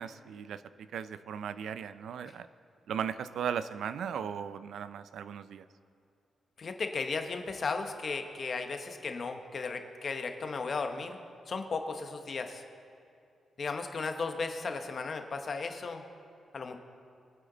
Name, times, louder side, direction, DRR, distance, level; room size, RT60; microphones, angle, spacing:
voice 1, 0.0-2.5 2.9-5.7, right 8 dB, 80° right, 13 dB, 0.4 m, -37 dB
voice 2, 6.6-11.2 11.5-12.6 13.6-16.0 16.5-16.8, left 4 dB, 35° left, 6 dB, 0.9 m, -35 dB
23.5 x 8.4 x 3.9 m, 2.6 s
wide cardioid pair, 180°, 0 cm